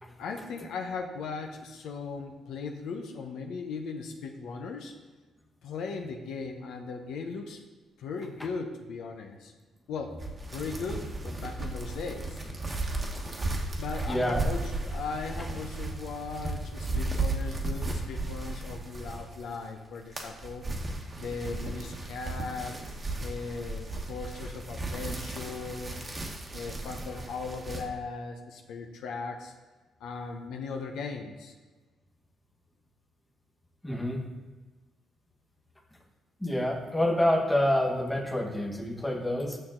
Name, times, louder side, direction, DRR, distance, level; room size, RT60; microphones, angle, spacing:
voice 1, 0.2-4.9 5.6-7.6 8.0-9.5 9.9-10.2 10.5-12.4 13.8-20.6 21.2-22.8 23.2-25.9 26.5-29.5 30.0-31.5, left 4 dB, 80° left, 3 dB, 0.8 m, -38 dB
sound 1, 10.2-19.5 19.9-27.8, right 2 dB, 25° right, 1.1 m, -35 dB
voice 2, 14.1-14.4 33.8-34.3 36.4-39.6, left 1 dB, 10° left, 2 dB, 1.0 m, -27 dB
6.7 x 6.1 x 3.8 m, 1.3 s
cardioid pair, 90°, 0 cm